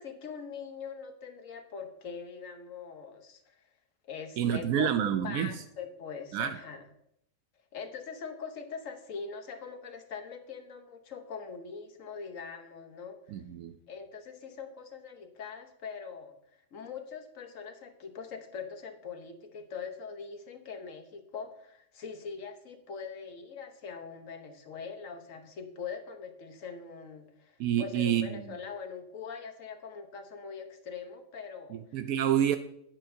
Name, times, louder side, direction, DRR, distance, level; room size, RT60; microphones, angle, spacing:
voice 1, 0.0-3.6 4.0-6.8 7.7-13.2 13.9-16.3 16.7-32.0, left 6 dB, 70° left, 1.5 m, -42 dB
voice 2, 4.4-5.5 6.3-6.6 13.3-13.7 27.6-28.4 31.7-32.6, right 10 dB, 85° right, 1.0 m, -28 dB
11.5 x 9.0 x 2.7 m
omnidirectional pair, 1.4 m